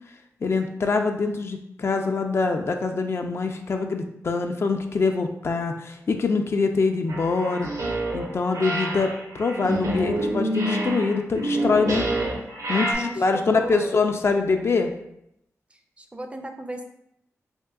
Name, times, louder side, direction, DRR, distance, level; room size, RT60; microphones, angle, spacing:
voice 1, 0.4-7.7 8.1-12.0 12.7-14.9, left 4 dB, 50° left, 5 dB, 0.3 m, -24 dB
sound 1, 7.1-8.3 8.5-12.9, right 1 dB, 75° right, 0.6 m, -27 dB
voice 2, 12.9-13.9 15.7-16.8, right 1 dB, 20° right, 5 dB, 0.4 m, -36 dB
3.5 x 2.7 x 2.3 m, 0.78 s
wide cardioid pair, 80°, 5 cm